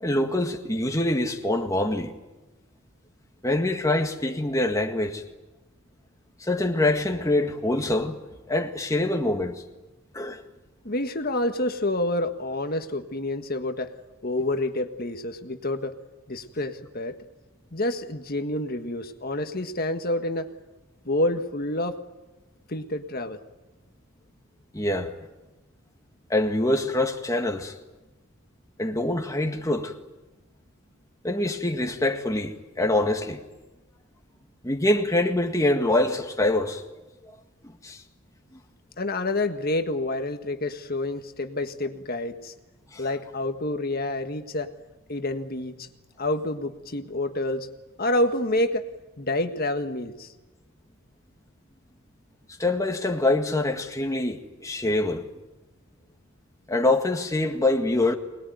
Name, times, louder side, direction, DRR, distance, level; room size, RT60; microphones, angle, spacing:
voice 1, 0.0-2.1 3.4-5.2 6.4-8.2 8.5-9.6 10.1-10.4 24.7-25.1 26.3-27.7 28.8-29.9 31.2-33.4 34.6-36.8 37.8-38.0 42.9-43.0 52.6-55.3 56.7-58.1, left 1 dB, 15° left, 1.9 m, -25 dB
voice 2, 10.8-13.9 14.2-15.9 16.3-17.1 17.7-20.5 21.0-22.0 22.7-23.4 39.0-42.5 43.0-44.7 45.1-45.9 46.2-47.7 48.0-48.8 49.2-50.3, left 1 dB, 45° left, 1.6 m, -28 dB
25.0 x 20.5 x 9.4 m
head